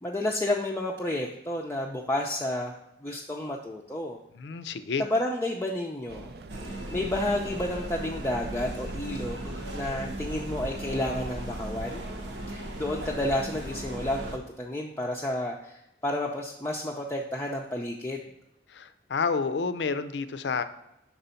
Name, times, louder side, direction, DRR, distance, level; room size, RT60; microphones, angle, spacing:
voice 1, 0.0-2.7 3.0-4.2 5.0-6.3 6.7-12.0 12.5-18.2, left 1 dB, 15° left, -2 dB, 0.4 m, -31 dB
voice 2, 4.4-5.0 18.7-20.6, left 5 dB, 75° left, 12 dB, 0.5 m, -29 dB
sound 1, 6.1-13.1, right 2 dB, 60° right, 0.4 m, -45 dB
sound 2, 6.5-14.4, right 1 dB, 75° right, 0.9 m, -37 dB
5.9 x 4.0 x 5.6 m, 0.85 s
head